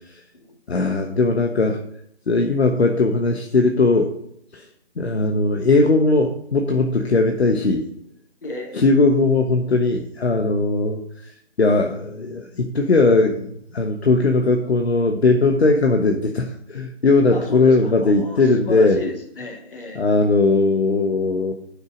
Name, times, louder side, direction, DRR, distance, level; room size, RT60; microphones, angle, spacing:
voice 1, 0.7-1.8 2.3-4.1 4.5-4.7 5.0-7.9 8.7-11.0 11.6-19.0 19.9-21.5, left 3 dB, 70° left, 3 dB, 1.1 m, -19 dB
voice 2, 8.4-8.8 17.3-20.1, left 2 dB, 50° left, 2 dB, 2.3 m, -33 dB
8.2 x 6.5 x 5.1 m, 0.73 s
figure-of-eight pair, 160°, 34 cm